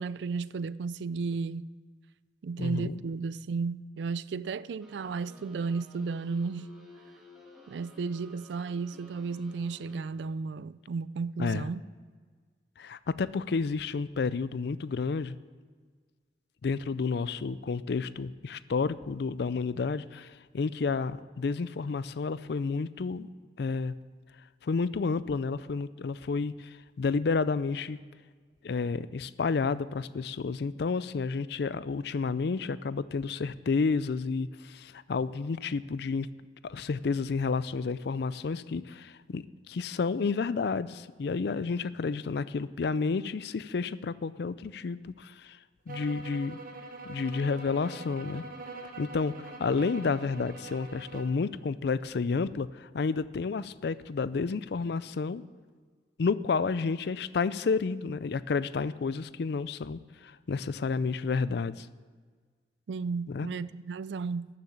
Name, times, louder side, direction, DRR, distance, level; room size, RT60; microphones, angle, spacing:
voice 1, 0.0-1.6 2.4-6.7 7.7-11.8 62.9-64.5, right 4 dB, 75° right, 0.4 m, -33 dB
voice 2, 2.6-3.0 11.4-11.7 12.8-15.4 16.6-23.3 23.6-23.9 24.6-28.0 28.6-36.3 36.6-45.6 45.9-46.6 47.0-48.4 49.0-55.4 56.2-61.9 63.3-63.5, left 4 dB, 65° left, 0.4 m, -31 dB
sound 1, 4.8-10.0, left 2 dB, ahead, 1.9 m, -53 dB
sound 2, 45.9-51.4, right 3 dB, 55° right, 1.3 m, -44 dB
13.0 x 6.9 x 7.2 m
head